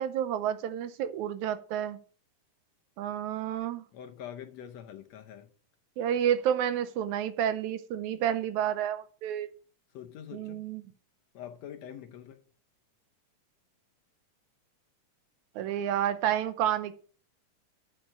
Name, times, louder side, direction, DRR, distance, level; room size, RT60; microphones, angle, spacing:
voice 1, 0.0-2.0 3.0-3.8 6.0-9.5 10.3-10.8 15.6-16.9, right 10 dB, 75° right, 2.0 m, -30 dB
voice 2, 3.9-5.5 9.9-10.6 11.3-12.4, left 9 dB, 70° left, 1.7 m, -44 dB
8.8 x 6.4 x 7.3 m
omnidirectional pair, 3.6 m